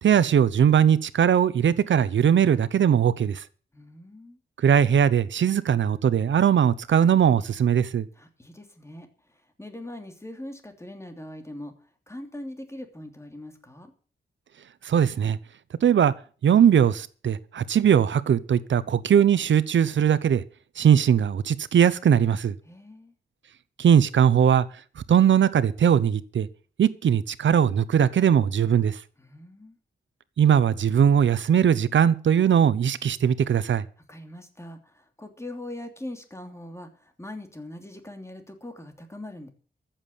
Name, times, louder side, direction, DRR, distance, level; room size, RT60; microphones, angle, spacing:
voice 1, 0.0-3.4 4.6-8.1 14.8-15.4 15.8-16.1 16.4-20.4 20.8-22.5 23.8-24.7 25.1-26.5 26.8-29.0 30.4-33.8, right 8 dB, 85° right, 0.8 m, -20 dB
voice 2, 3.7-4.4 8.1-13.9 22.6-23.1 29.2-29.8 34.0-39.5, left 1 dB, 15° left, 2.9 m, -41 dB
14.5 x 7.5 x 8.4 m
wide cardioid pair, 95°, 19 cm